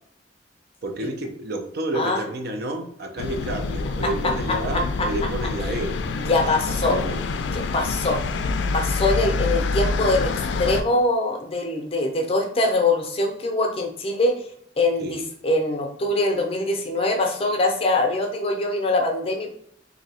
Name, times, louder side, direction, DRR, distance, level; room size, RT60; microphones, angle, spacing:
voice 1, 0.8-6.0 6.2-6.3 6.7-7.4 15.0-15.2, right 1 dB, 60° right, 4 dB, 0.6 m, -30 dB
sound 1, 3.2-10.8, left 3 dB, 75° left, 0.3 m, -26 dB
voice 2, 4.7-5.1 6.3-7.0 7.5-8.2 8.7-10.3 10.6-14.3 14.8-19.5, left 2 dB, 30° left, 2 dB, 0.6 m, -23 dB
2.8 x 2.7 x 4.2 m, 0.69 s
head